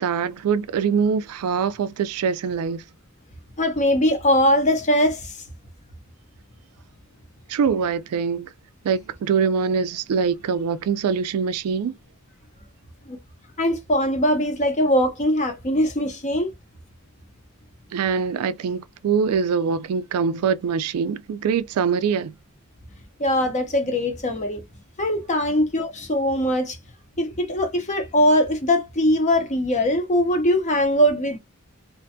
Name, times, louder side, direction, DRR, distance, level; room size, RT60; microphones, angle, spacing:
voice 1, 0.0-2.8 7.5-8.5 8.8-11.9 17.9-22.3, right 6 dB, 75° right, 0.3 m, -23 dB
voice 2, 3.6-5.4 13.1-13.2 13.6-16.5 23.2-24.6 25.0-26.8 27.2-31.4, equal, 35° left, 0.7 m, -21 dB
2.5 x 2.2 x 2.6 m
head